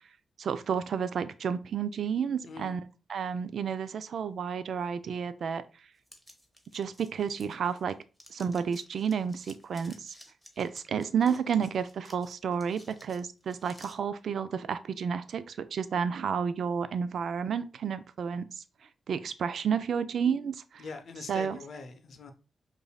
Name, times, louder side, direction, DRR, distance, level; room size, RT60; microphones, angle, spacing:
voice 1, 0.4-2.8 3.1-5.6 6.7-8.0 8.3-10.1 10.6-18.5 19.1-20.8 21.3-21.6, right 7 dB, 70° right, 0.3 m, -31 dB
voice 2, 2.4-2.8 20.8-22.3, left 4 dB, 65° left, 0.6 m, -43 dB
sound 1, 6.1-7.9 8.2-14.0, equal, 5° right, 0.9 m, -54 dB
5.1 x 2.5 x 2.2 m
cardioid pair, 75°, 0 cm